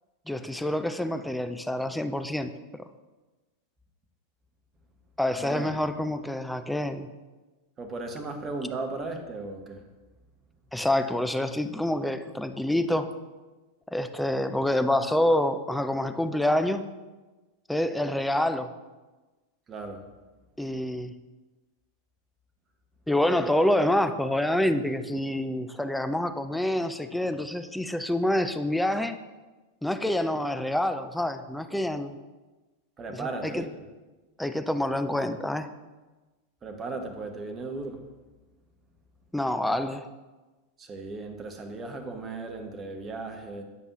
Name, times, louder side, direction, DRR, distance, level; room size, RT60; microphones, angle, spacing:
voice 1, 0.3-2.8 5.2-7.1 10.7-13.1 13.9-16.9 17.7-18.7 20.6-21.1 23.1-29.2 29.8-32.1 33.1-33.6 34.4-35.7 39.3-40.1, left 1 dB, 5° left, 9 dB, 0.4 m, -27 dB
voice 2, 5.4-5.8 7.8-9.9 19.7-20.1 33.0-33.8 36.6-38.0 40.8-43.6, right 3 dB, 25° right, 4 dB, 0.9 m, -36 dB
9.3 x 5.3 x 2.9 m, 1.2 s
figure-of-eight pair, 90°, 0 cm